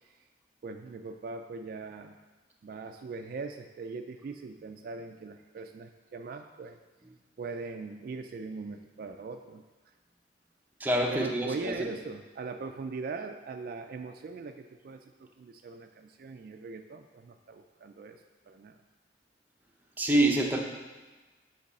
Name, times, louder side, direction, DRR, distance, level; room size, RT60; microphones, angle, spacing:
voice 1, 0.6-2.2 2.6-6.8 7.4-9.6 11.1-18.2 18.5-18.7, right 4 dB, 50° right, 6 dB, 0.3 m, -40 dB
voice 2, 10.8-11.9 20.0-20.6, right 1 dB, 10° right, 1 dB, 0.6 m, -26 dB
7.6 x 4.0 x 4.1 m, 1.3 s
head